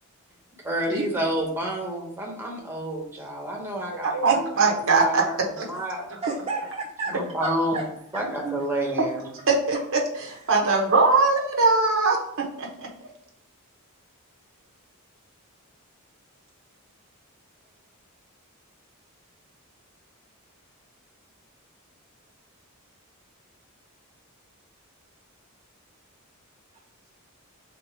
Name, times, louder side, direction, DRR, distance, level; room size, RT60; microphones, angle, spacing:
voice 1, 0.6-6.1 7.1-7.8 8.1-9.3, right 1 dB, 10° right, 0 dB, 0.9 m, -29 dB
voice 2, 4.0-5.2 5.6-5.7 8.4-8.6 9.5-10.0 10.5-12.9, right 3 dB, 60° right, 0 dB, 0.9 m, -21 dB
voice 3, 6.2-7.8 10.3-10.4, right 3 dB, 25° right, -3 dB, 0.5 m, -32 dB
3.6 x 3.0 x 4.7 m, 0.74 s
head